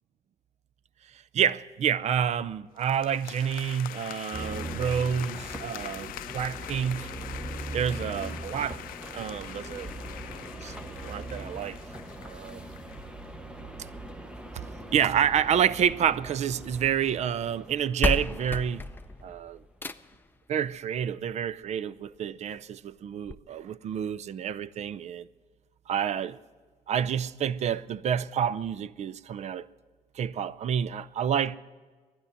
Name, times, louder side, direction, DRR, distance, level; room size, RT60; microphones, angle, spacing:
voice 1, 1.3-7.1 7.7-8.8 9.1-9.9 10.6-10.8 11.0-11.8 12.2-12.7 14.5-14.6 14.9-18.9 19.2-19.6 20.5-25.3 25.9-26.4 26.9-29.7 30.2-31.6, right 8 dB, 50° right, 0.5 m, -28 dB
sound 1, 2.8-13.1, left 14 dB, 85° left, 0.5 m, -43 dB
sound 2, 4.3-19.5, right 1 dB, 5° right, 1.0 m, -41 dB
sound 3, 15.6-16.8 17.7-17.8 18.0-20.3 21.6-21.7 22.2-22.3 22.6-22.7 23.3-23.4, left 3 dB, 15° left, 0.5 m, -33 dB
12.0 x 10.0 x 9.7 m
cardioid pair, 110°, 14 cm